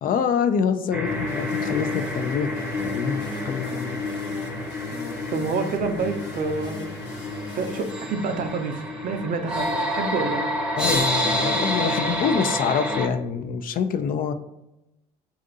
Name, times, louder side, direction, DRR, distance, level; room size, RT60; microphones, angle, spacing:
voice 1, 0.0-2.5 2.8-4.0 10.7-14.3, left 7 dB, 55° left, 9 dB, 0.4 m, -26 dB
sound 1, 0.9-13.1, left 1 dB, 5° right, 0.7 m, -28 dB
sound 2, 1.1-7.9, left 2 dB, 90° left, 0.7 m, -40 dB
voice 2, 5.3-6.9 7.6-10.4, right 4 dB, 50° right, 7 dB, 0.5 m, -28 dB
2.6 x 2.4 x 3.9 m, 0.91 s
supercardioid pair, 75°, 18 cm